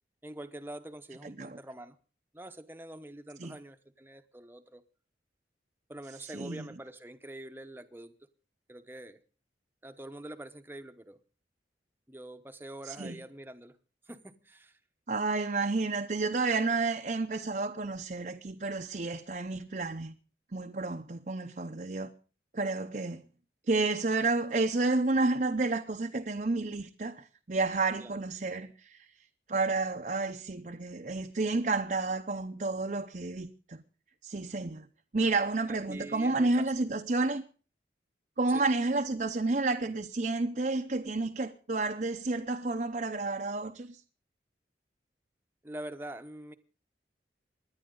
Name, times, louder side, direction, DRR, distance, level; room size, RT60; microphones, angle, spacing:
voice 1, 0.2-2.0 2.3-4.8 5.9-8.1 8.7-9.2 9.8-11.2 12.1-13.8 14.1-14.8 28.0-28.1 35.7-36.7 38.5-38.6 45.6-46.5, right 1 dB, 10° right, 0.9 m, -45 dB
voice 2, 1.2-1.6 3.4-3.6 6.3-6.7 12.8-13.2 15.1-20.2 20.5-22.1 22.5-23.2 23.7-29.1 29.5-33.8 34.2-34.9 35.1-37.4 38.4-44.0, right 3 dB, 45° right, 0.7 m, -30 dB
26.0 x 10.5 x 3.8 m
head